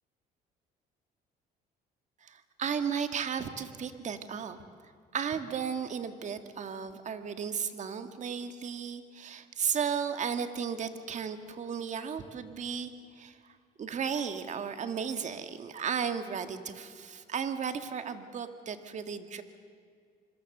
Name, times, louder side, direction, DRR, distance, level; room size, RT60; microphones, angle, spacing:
voice 1, 2.2-4.6 5.1-13.4 13.8-19.4, right 7 dB, 45° right, 9 dB, 1.8 m, -34 dB
26.0 x 22.5 x 6.7 m, 2.2 s
cardioid pair, 110°, 17 cm